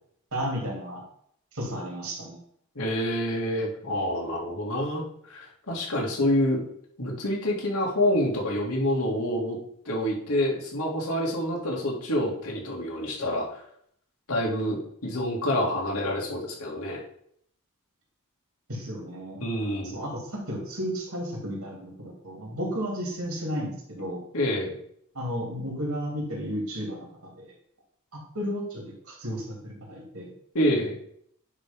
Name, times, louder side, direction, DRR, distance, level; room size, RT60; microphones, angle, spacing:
voice 1, 0.3-1.0 1.5-2.4 18.7-19.4 19.9-24.2 25.1-27.5 28.3-30.3, equal, 75° right, -1 dB, 3.0 m, -33 dB
voice 2, 2.7-6.6 7.0-9.6 9.9-13.6 14.3-17.0 19.4-20.0 24.3-24.8 30.5-31.0, left 1 dB, 75° left, -3 dB, 2.4 m, -27 dB
10.0 x 3.4 x 5.4 m, 0.68 s
head